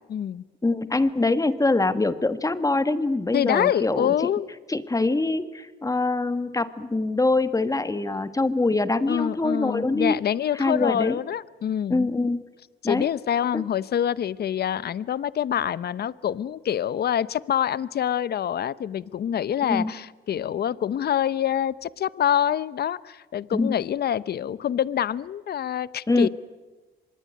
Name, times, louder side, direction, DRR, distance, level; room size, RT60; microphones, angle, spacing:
voice 1, 0.1-0.4 3.3-4.5 9.1-12.1 12.8-26.3, left 9 dB, 55° left, 18 dB, 0.8 m, -26 dB
voice 2, 0.6-4.1 4.7-10.2 10.5-11.1 11.9-12.4 12.8-13.1 13.5-13.6 19.6-19.9 23.5-23.7 26.1-26.3, left 2 dB, 15° left, 12 dB, 1.5 m, -24 dB
25.0 x 21.5 x 9.6 m, 1.3 s
cardioid pair, 90°, 20 cm